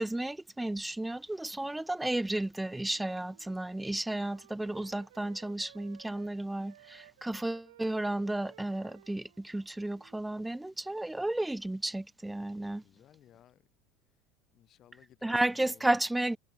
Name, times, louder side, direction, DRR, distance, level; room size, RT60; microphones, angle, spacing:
voice 1, 0.0-12.8 15.2-16.4, right 1 dB, 10° right, 0.7 m, -33 dB
Wind instrument woodwind instrument, 2.6-6.4 6.6-10.8, right 14 dB, 75° right, 1.5 m, -59 dB
voice 2, 12.8-13.7 14.1-14.2 14.5-15.9, left 11 dB, 45° left, 4.9 m, -60 dB
figure-of-eight pair, 70°, 0 cm